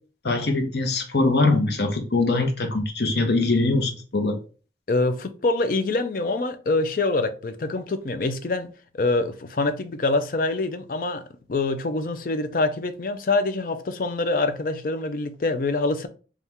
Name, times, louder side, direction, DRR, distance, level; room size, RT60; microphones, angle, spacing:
voice 1, 0.2-4.4, left 2 dB, 70° left, 0.9 m, -22 dB
voice 2, 4.9-11.2 11.5-16.1, left 2 dB, 50° left, 0.4 m, -25 dB
4.2 x 2.4 x 3.5 m
head